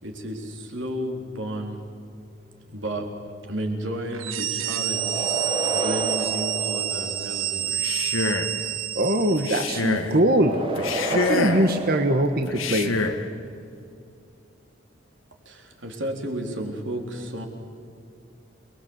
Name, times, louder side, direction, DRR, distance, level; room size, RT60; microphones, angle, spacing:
voice 1, 0.0-1.8 2.7-3.1 3.4-5.3 5.7-7.9 15.5-17.5, right 1 dB, 65° right, 2 dB, 3.9 m, -32 dB
sound 1, 4.1-9.8, right 12 dB, 85° right, 1.2 m, -28 dB
sound 2, 4.9-7.6 10.2-13.0, right 1 dB, 25° right, 1.8 m, -31 dB
Male speech man speaking, 7.7-8.6 9.4-10.1 10.7-11.7 12.5-13.2, left 3 dB, 80° left, 1.7 m, -27 dB
voice 2, 8.9-10.5 11.1-13.0, right 1 dB, 50° right, 5 dB, 1.4 m, -22 dB
29.0 x 21.0 x 8.1 m, 2.5 s
head